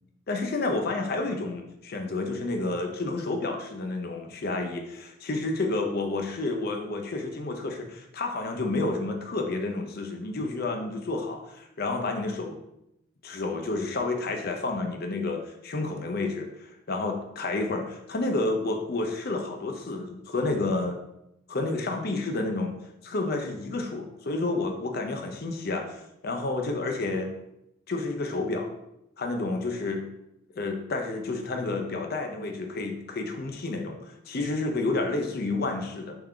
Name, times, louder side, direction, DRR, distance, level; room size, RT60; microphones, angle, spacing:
voice 1, 0.3-12.6 13.2-21.0 21.5-22.8 23.0-27.3 27.9-28.7 29.2-30.0 30.6-36.1, left 2 dB, 45° left, 3 dB, 0.5 m, -30 dB
3.6 x 3.4 x 3.4 m, 0.84 s
head